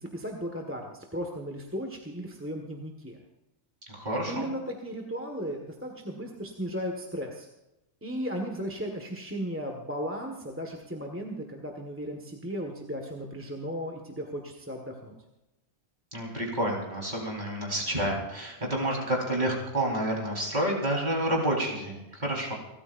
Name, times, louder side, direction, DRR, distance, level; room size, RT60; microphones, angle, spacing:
voice 1, 0.0-3.2 4.2-7.5 8.0-15.1, equal, 10° right, 1 dB, 1.6 m, -36 dB
voice 2, 4.0-4.5 16.1-22.5, right 1 dB, 35° right, -2 dB, 4.7 m, -29 dB
30.0 x 14.0 x 2.6 m, 0.94 s
omnidirectional pair, 1.3 m